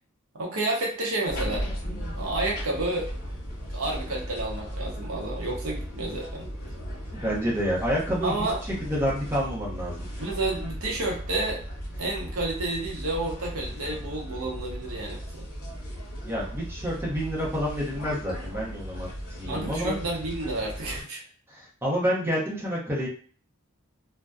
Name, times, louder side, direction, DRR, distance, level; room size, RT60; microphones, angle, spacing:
voice 1, 0.3-1.7 2.1-3.1 3.7-6.5 8.2-8.6 10.2-11.6 12.0-15.5 19.4-21.2, right 2 dB, 70° right, -2 dB, 0.8 m, -30 dB
sound 1, 1.3-21.0, equal, 45° left, 1.0 m, -36 dB
voice 2, 7.2-8.3 8.8-10.1 16.2-19.9 21.5-23.1, equal, 10° right, -5 dB, 0.7 m, -28 dB
2.5 x 2.1 x 2.3 m, 0.43 s
head